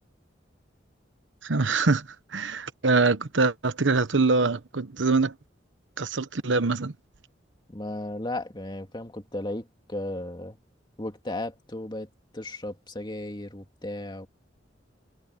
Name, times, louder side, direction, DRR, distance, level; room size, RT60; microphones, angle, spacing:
voice 1, 1.4-5.3 6.0-6.9, right 3 dB, 90° right, 1.1 m, -24 dB
voice 2, 7.7-10.6 11.0-12.1 12.3-14.3, left 1 dB, 25° left, 2.5 m, -35 dB
head